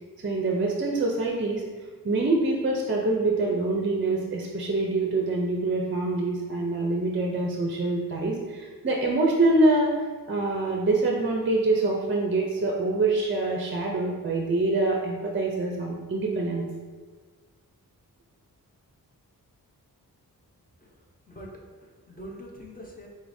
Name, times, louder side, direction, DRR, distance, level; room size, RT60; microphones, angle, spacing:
voice 1, 0.2-1.6 2.0-9.9 10.3-16.6, right 2 dB, 35° right, 0 dB, 0.5 m, -25 dB
voice 2, 21.3-23.1, equal, 25° left, -1 dB, 0.7 m, -44 dB
4.8 x 4.0 x 2.6 m, 1.4 s
wide cardioid pair, 145°, 36 cm